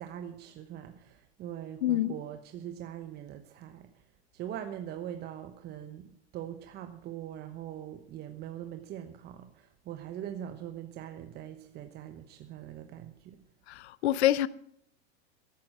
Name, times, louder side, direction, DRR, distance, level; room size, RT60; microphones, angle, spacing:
voice 1, 0.0-3.9 4.3-13.4, right 10 dB, 30° right, 1.0 m, -42 dB
voice 2, 1.8-2.2 13.7-14.5, left 13 dB, 80° left, 0.6 m, -26 dB
14.0 x 11.5 x 6.1 m
hypercardioid pair, 125°, 33 cm